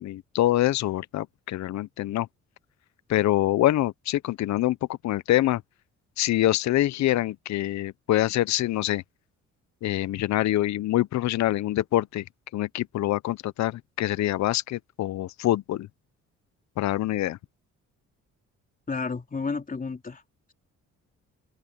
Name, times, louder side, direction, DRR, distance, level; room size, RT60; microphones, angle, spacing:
voice 1, 0.0-2.3 3.1-4.8 5.0-5.6 6.2-9.0 9.8-12.2 12.5-15.9 16.8-17.4, left 14 dB, 65° left, 0.6 m, -25 dB
voice 2, 18.9-20.2, left 4 dB, 30° left, 3.5 m, -31 dB
open air
cardioid pair, 90°, 30 cm